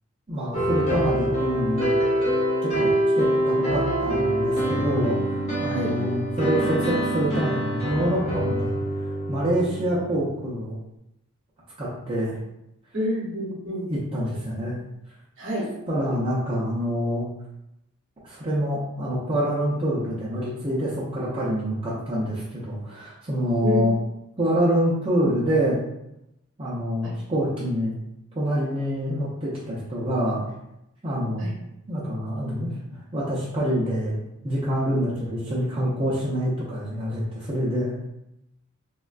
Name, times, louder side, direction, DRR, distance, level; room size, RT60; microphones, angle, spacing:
voice 1, 0.3-1.9 2.6-5.3 5.6-8.8 9.3-10.8 11.8-12.4 13.9-14.7 15.9-17.3 18.2-23.9 24.4-25.8 26.6-27.9 28.4-30.5 31.0-31.5 31.9-34.1 34.4-38.0, equal, 25° right, -8 dB, 0.5 m, -26 dB
sound 1, 0.5-10.3, right 1 dB, 30° left, 0.6 m, -25 dB
voice 2, 5.7-6.0 12.9-13.9 15.4-15.7 23.6-23.8 27.0-27.1 31.4-31.5, left 1 dB, 55° right, -3 dB, 0.9 m, -28 dB
3.6 x 2.2 x 2.4 m, 0.87 s
head